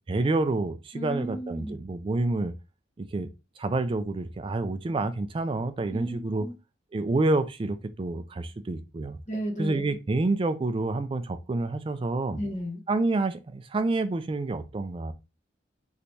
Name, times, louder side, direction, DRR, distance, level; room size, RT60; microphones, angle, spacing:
voice 1, 0.1-2.5 3.0-3.3 3.6-6.5 6.9-9.2 9.6-12.4 12.9-15.1, right 2 dB, 30° right, 0.3 m, -28 dB
voice 2, 0.9-1.7 5.9-6.5 9.3-10.0 12.4-12.8, equal, 40° left, 1.2 m, -34 dB
3.2 x 2.9 x 2.7 m
head